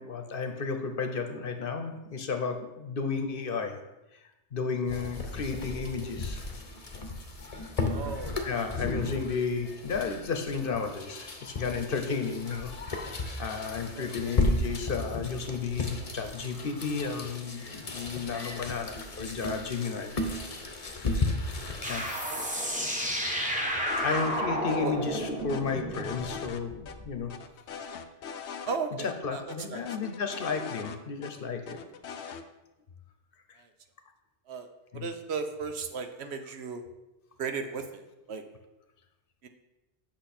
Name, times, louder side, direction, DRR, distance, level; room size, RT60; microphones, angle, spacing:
voice 1, 0.0-3.8 4.5-6.4 8.4-20.1 21.9-22.1 23.4-27.3 29.2-31.8 34.9-35.0, left 5 dB, 60° left, 6 dB, 1.0 m, -33 dB
sound 1, 4.9-21.9, left 2 dB, 35° left, 0.9 m, -34 dB
voice 2, 7.9-8.7 9.0-9.1 13.9-14.4 21.9-23.0 24.8-24.9 28.7-29.9 33.6-33.7 34.5-36.8 37.4-38.4 39.4-39.5, right 5 dB, 75° right, 7 dB, 1.1 m, -37 dB
sound 2, 21.8-27.1, equal, 5° right, 1.1 m, -32 dB
sound 3, 23.9-24.4 24.7-24.8 25.1-26.6 26.9-27.0 27.3-28.8 29.0-29.1 29.5-31.3 31.7-32.4, left 6 dB, 85° left, 0.9 m, -41 dB
8.2 x 6.0 x 4.3 m, 0.99 s
omnidirectional pair, 1.1 m